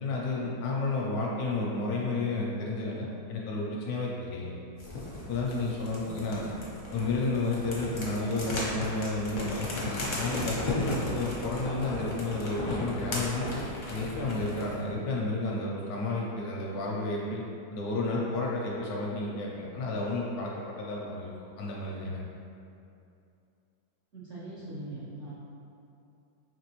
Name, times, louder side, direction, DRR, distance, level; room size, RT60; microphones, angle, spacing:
voice 1, 0.0-4.5 5.3-6.5 6.9-9.9 10.2-13.6 13.9-17.4 17.7-21.3 21.6-22.2, left 2 dB, 70° left, -3 dB, 0.9 m, -31 dB
sound 1, 4.8-14.8, left 1 dB, 50° left, 0.5 m, -36 dB
voice 2, 24.1-25.3, right 2 dB, 60° right, -9 dB, 0.7 m, -41 dB
5.0 x 3.1 x 3.0 m, 2.6 s
omnidirectional pair, 2.1 m